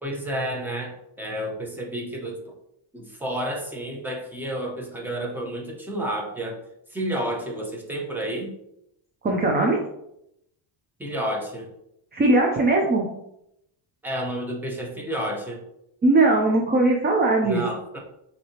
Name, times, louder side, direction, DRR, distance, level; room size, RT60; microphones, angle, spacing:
voice 1, 0.0-2.5 2.9-6.6 6.9-8.5 11.0-11.7 14.0-15.6 17.4-18.0, right 1 dB, 5° right, -1 dB, 0.9 m, -30 dB
voice 2, 9.2-9.8 12.1-13.1 16.0-17.6, right 2 dB, 20° right, 1 dB, 0.5 m, -19 dB
6.2 x 2.9 x 2.9 m, 0.80 s
cardioid pair, 135°, 48 cm